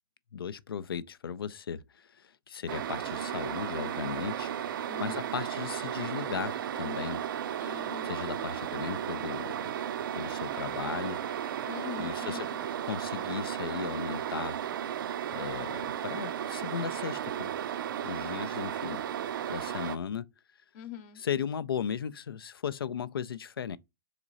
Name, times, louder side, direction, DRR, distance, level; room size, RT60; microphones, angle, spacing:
voice 1, 0.3-7.3 8.0-9.7 10.2-11.2 12.0-12.5 12.9-14.6 15.3-17.5 18.0-19.0 19.5-20.3 21.2-23.8, left 7 dB, 85° left, 0.4 m, -36 dB
sound 1, 2.7-20.0, right 10 dB, 70° right, 0.4 m, -34 dB
voice 2, 4.9-5.3 7.6-8.7 11.7-12.6 20.7-21.2, left 9 dB, 45° left, 0.8 m, -44 dB
3.7 x 3.1 x 3.7 m
hypercardioid pair, 110°, 12 cm